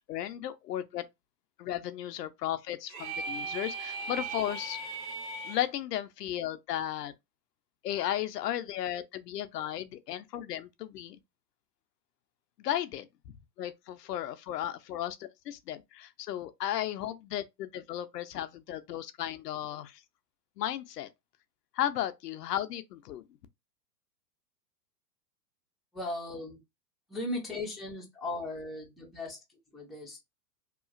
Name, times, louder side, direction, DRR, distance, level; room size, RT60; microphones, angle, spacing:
voice 1, 0.1-1.0 1.6-4.8 5.4-7.1 7.8-11.2 12.6-13.1 13.6-20.0 20.6-21.1 21.7-23.2, left 12 dB, 70° left, 0.6 m, -35 dB
sound 1, 2.9-5.7, right 3 dB, 25° right, 1.2 m, -38 dB
voice 2, 25.9-26.6 27.1-30.2, left 2 dB, ahead, 0.6 m, -37 dB
2.9 x 2.4 x 2.4 m
hypercardioid pair, 120°, 50 cm